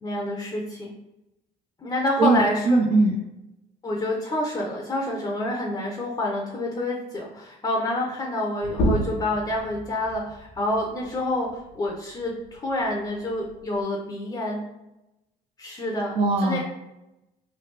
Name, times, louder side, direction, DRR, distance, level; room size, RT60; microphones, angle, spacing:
voice 1, 0.0-0.9 1.8-2.8 3.8-14.6 15.6-16.6, left 1 dB, 25° left, -1 dB, 0.6 m, -28 dB
voice 2, 2.2-3.2 16.2-16.6, right 3 dB, 35° right, 3 dB, 0.4 m, -20 dB
sound 1, 8.6-13.8, equal, 70° left, 0.9 m, -32 dB
3.2 x 2.2 x 3.2 m, 0.93 s
cardioid pair, 110°, 17 cm